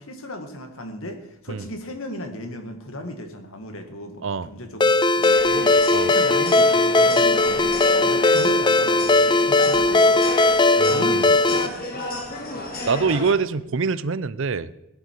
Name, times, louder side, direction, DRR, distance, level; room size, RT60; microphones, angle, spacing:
voice 1, 0.0-10.2 10.9-12.0, left 1 dB, 65° left, 6 dB, 2.0 m, -36 dB
Ringtone, 4.8-11.7, left 2 dB, 20° left, 0.5 m, -18 dB
sound 1, 5.2-13.3, left 2 dB, 40° left, 2.5 m, -31 dB
voice 2, 10.8-11.3 12.9-14.7, right 5 dB, 60° right, 16 dB, 0.6 m, -24 dB
16.5 x 11.0 x 4.7 m, 0.92 s
head